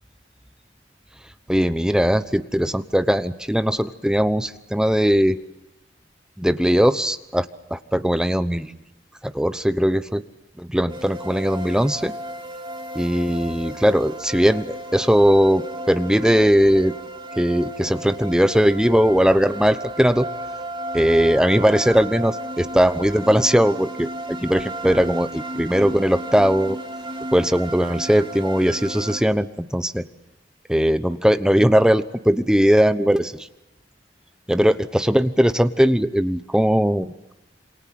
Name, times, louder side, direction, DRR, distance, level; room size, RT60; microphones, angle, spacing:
voice 1, 1.5-5.4 6.4-8.7 9.2-10.2 10.6-12.1 12.9-16.9 17.4-20.3 20.9-26.8 27.3-30.1 30.7-33.3 34.5-37.1, equal, 5° right, 12 dB, 1.0 m, -19 dB
sound 1, 10.9-29.2, right 1 dB, 25° right, 2.7 m, -34 dB
27.5 x 27.0 x 7.6 m, 0.92 s
head